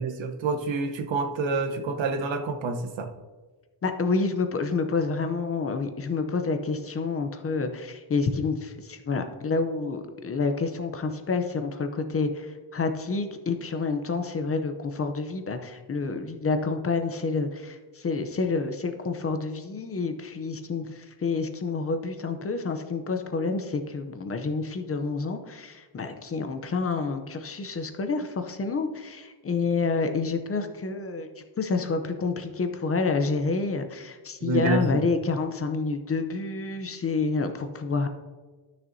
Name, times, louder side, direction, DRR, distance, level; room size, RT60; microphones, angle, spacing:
voice 1, 0.0-3.1 34.4-35.0, right 3 dB, 80° right, 6 dB, 1.0 m, -27 dB
voice 2, 3.8-38.1, left 4 dB, 30° left, 7 dB, 0.6 m, -28 dB
13.5 x 6.3 x 2.7 m, 1.3 s
wide cardioid pair, 180°, 45 cm